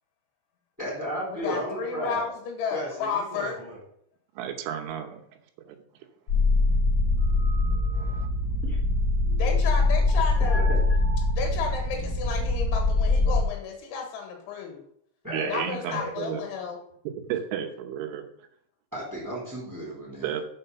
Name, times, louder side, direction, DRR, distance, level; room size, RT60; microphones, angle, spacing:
voice 1, 0.8-2.2 2.7-3.8 8.6-8.8 10.5-10.8 15.2-15.5 15.8-16.1 18.9-20.4, equal, 5° right, 2.6 m, -34 dB
voice 2, 1.3-3.6 9.4-10.6 11.3-14.8 15.5-16.8, left 6 dB, 80° left, 3.9 m, -32 dB
voice 3, 4.4-5.2 5.7-5.8 8.0-8.3 15.3-16.4 17.3-18.2 20.2-20.4, right 9 dB, 80° right, 3.3 m, -32 dB
sound 1, 6.3-13.4, left 2 dB, 30° left, 3.4 m, -23 dB
6.9 x 5.1 x 6.8 m
omnidirectional pair, 5.5 m